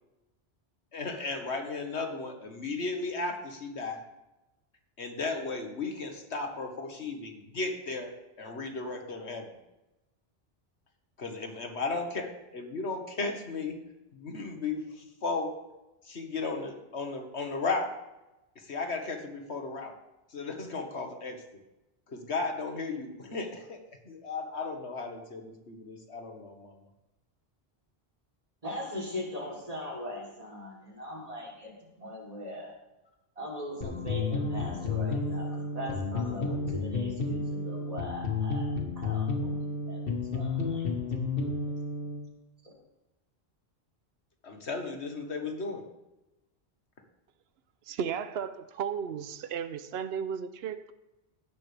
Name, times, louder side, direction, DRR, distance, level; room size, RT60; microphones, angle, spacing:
voice 1, 0.9-4.0 5.0-9.6 11.2-13.8 14.1-15.6 16.0-17.9 18.6-20.0 20.3-21.4 22.1-26.8 44.4-45.9, left 3 dB, 85° left, 1.9 m, -35 dB
voice 2, 28.6-32.7 33.4-38.7 39.0-40.0 40.3-40.8 41.4-41.7, left 1 dB, 35° right, 3.6 m, -40 dB
sound 1, 33.8-42.2, left 3 dB, 60° left, 1.7 m, -31 dB
voice 3, 47.9-50.9, right 7 dB, 70° right, 0.9 m, -34 dB
16.0 x 11.5 x 3.5 m
omnidirectional pair, 1.1 m